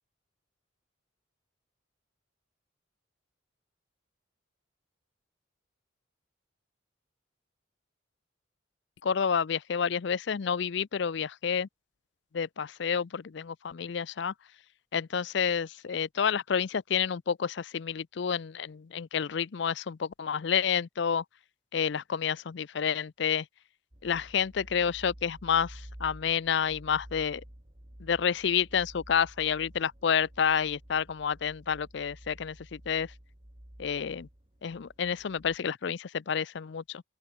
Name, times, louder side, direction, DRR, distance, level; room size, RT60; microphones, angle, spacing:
voice 1, 9.0-11.7 12.3-14.3 14.9-21.2 21.7-23.5 24.0-27.4 28.0-33.1 33.8-34.3 34.6-37.0, left 7 dB, 60° left, 0.4 m, -29 dB
sound 1, 23.9-35.6, equal, 30° right, 2.4 m, -51 dB
open air
head